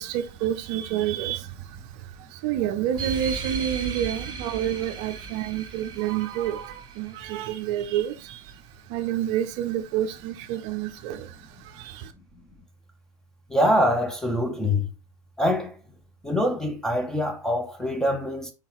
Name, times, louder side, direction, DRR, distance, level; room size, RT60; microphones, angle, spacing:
voice 1, 0.0-8.6 8.9-12.1, right 11 dB, 50° right, 0.6 m, -29 dB
sound 1, 2.9-8.0, right 4 dB, 25° right, 1.6 m, -36 dB
voice 2, 13.5-14.9 15.4-15.7 16.2-18.5, left 1 dB, 5° left, 0.8 m, -24 dB
4.7 x 3.7 x 3.0 m
hypercardioid pair, 125°, 19 cm